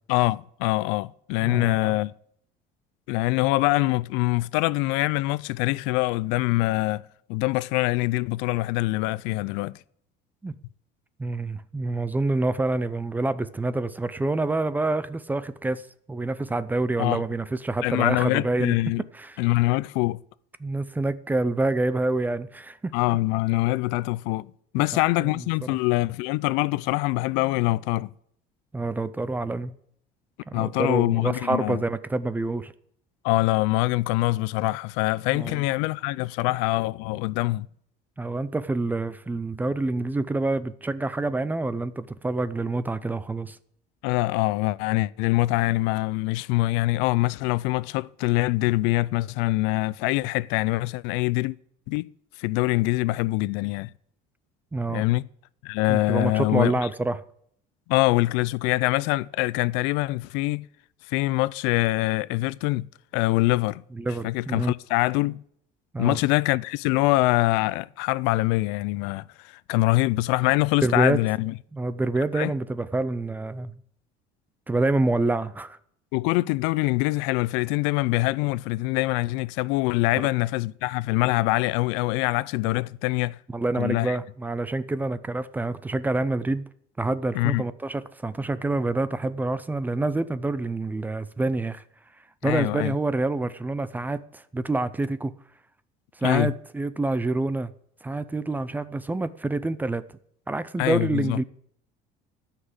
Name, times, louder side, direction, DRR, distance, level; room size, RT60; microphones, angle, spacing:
voice 1, 0.1-2.1 3.1-7.0 7.3-9.8 17.0-17.2 17.8-19.0 19.4-20.2 22.9-28.1 30.5-31.8 33.2-37.7 44.0-51.6 51.9-52.1 52.4-53.9 54.9-55.2 55.6-56.9 57.9-60.7 61.1-62.9 63.1-63.8 64.2-65.4 66.0-71.5 72.3-72.5 76.1-83.4 83.7-84.2 87.3-87.6 92.4-92.9 96.2-96.5 100.8-101.4, left 20 dB, 90° left, 0.4 m, -24 dB
voice 2, 1.4-2.0 10.4-10.6 11.2-18.8 19.1-19.4 20.6-22.9 24.8-24.9 25.2-25.4 25.7-25.8 28.7-29.7 30.5-32.7 35.3-35.6 38.2-43.6 54.7-55.1 55.9-57.2 63.9-64.7 65.9-66.2 70.8-71.2 71.7-73.8 74.7-75.8 80.2-80.3 83.5-86.7 87.0-91.8 92.4-95.3 96.2-97.7 98.0-100.0 100.5-101.4, right 2 dB, 10° right, 0.5 m, -27 dB
13.0 x 5.8 x 8.0 m
cardioid pair, 145°, 19 cm